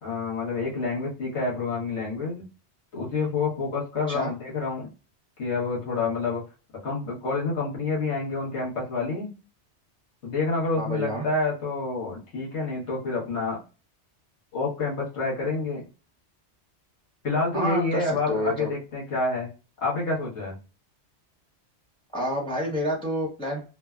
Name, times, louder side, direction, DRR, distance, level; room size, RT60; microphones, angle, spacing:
voice 1, 0.0-2.5 2.9-4.9 5.4-6.4 6.8-9.3 10.2-13.6 14.5-15.8 17.2-19.5 19.8-20.5, left 3 dB, 75° left, -4 dB, 1.3 m, -28 dB
voice 2, 10.8-11.2 17.5-18.7 22.1-23.7, left 1 dB, 5° left, -2 dB, 0.5 m, -28 dB
3.2 x 2.1 x 2.3 m, 0.33 s
omnidirectional pair, 1.2 m